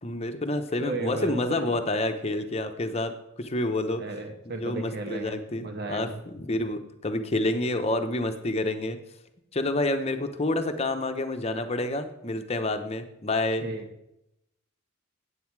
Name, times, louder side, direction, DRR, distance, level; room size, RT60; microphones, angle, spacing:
voice 1, 0.0-4.0 4.6-9.0 9.5-13.6, left 2 dB, 30° left, 7 dB, 0.8 m, -28 dB
voice 2, 0.8-1.7 4.0-6.2 13.6-13.8, right 2 dB, 55° right, 4 dB, 1.4 m, -35 dB
9.3 x 8.1 x 4.7 m, 0.86 s
head